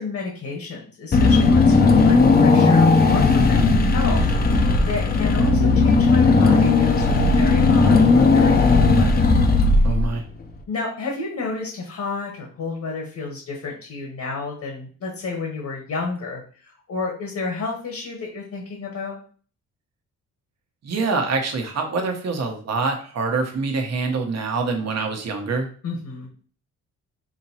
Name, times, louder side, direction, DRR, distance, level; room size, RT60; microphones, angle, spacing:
voice 1, 0.0-9.3 9.9-10.0 10.7-19.2 25.8-26.3, left 3 dB, 60° left, 0 dB, 1.3 m, -31 dB
Car / Engine, 1.1-10.3, left 3 dB, 30° left, 0.6 m, -16 dB
voice 2, 9.8-10.2 20.8-25.7, right 4 dB, 55° right, 3 dB, 1.0 m, -25 dB
5.0 x 3.0 x 2.8 m, 0.42 s
cardioid pair, 115°, 31 cm